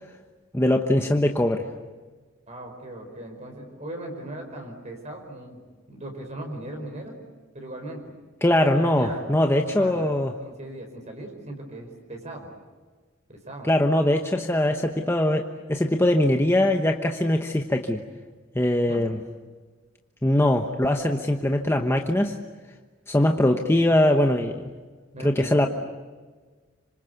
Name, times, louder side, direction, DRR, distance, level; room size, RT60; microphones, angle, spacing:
voice 1, 0.5-1.7 8.4-10.3 13.6-18.0 18.5-19.2 20.2-22.4 23.1-24.7 25.2-25.7, left 1 dB, 15° left, 3 dB, 1.1 m, -22 dB
voice 2, 2.5-7.1 7.5-8.0 8.6-10.1 10.4-12.5 13.3-13.7 18.9-19.0 25.1-25.7, right 1 dB, 35° right, 3 dB, 4.9 m, -38 dB
26.5 x 25.5 x 8.2 m, 1.4 s
head